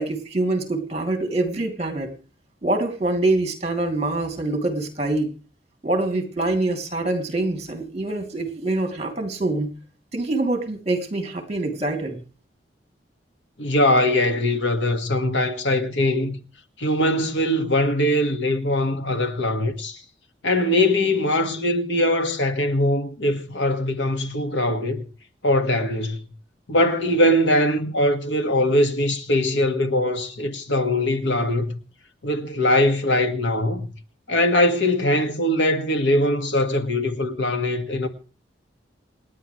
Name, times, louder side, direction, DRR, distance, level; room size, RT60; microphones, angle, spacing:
voice 1, 0.0-2.1 2.6-5.3 5.8-9.7 10.1-12.2, right 2 dB, 35° right, 2.8 m, -25 dB
voice 2, 13.6-16.4 16.8-20.0 20.4-25.0 25.4-26.3 26.7-31.8 32.2-33.9 34.3-38.1, left 1 dB, 80° left, 1.8 m, -21 dB
28.0 x 9.9 x 3.2 m
head